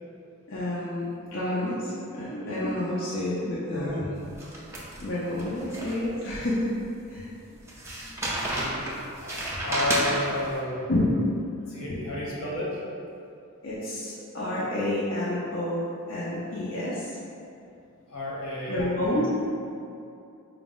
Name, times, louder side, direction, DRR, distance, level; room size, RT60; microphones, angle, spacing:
voice 1, 0.5-4.1 5.0-6.7 7.1-7.3 10.9-11.1 11.9-12.0 13.6-17.1 18.7-19.3, left 1 dB, 60° left, -8 dB, 0.5 m, -29 dB
voice 2, 3.4-4.0 8.5-8.8 9.2-9.4 9.6-10.9 11.7-12.8 18.1-19.3, left 1 dB, 85° left, -6 dB, 1.0 m, -32 dB
sound 1, 4.3-6.4 6.8-6.9 7.7-10.5, right 1 dB, 10° right, 0.4 m, -31 dB
4.8 x 2.0 x 3.6 m, 2.6 s
head